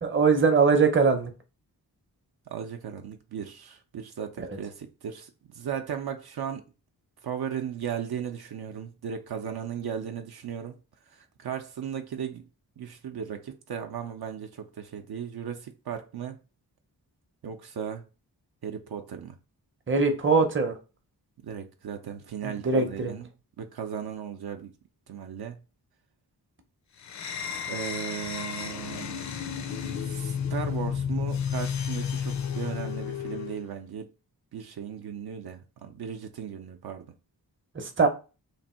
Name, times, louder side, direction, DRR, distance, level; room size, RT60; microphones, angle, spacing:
voice 1, 0.0-1.3 4.5-4.6 19.9-20.8 22.4-23.1 37.7-38.1, right 4 dB, 30° right, 0.7 m, -22 dB
voice 2, 2.5-6.6 7.2-10.8 11.1-12.4 12.8-16.4 17.4-18.0 18.6-19.4 21.4-23.3 23.6-24.7 25.1-25.6 27.6-29.2 29.9-34.1 34.5-37.1, right 8 dB, 70° right, 0.6 m, -36 dB
sound 1, 27.0-33.6, left 7 dB, 50° left, 0.4 m, -32 dB
3.2 x 2.6 x 4.2 m
wide cardioid pair, 120°, 39 cm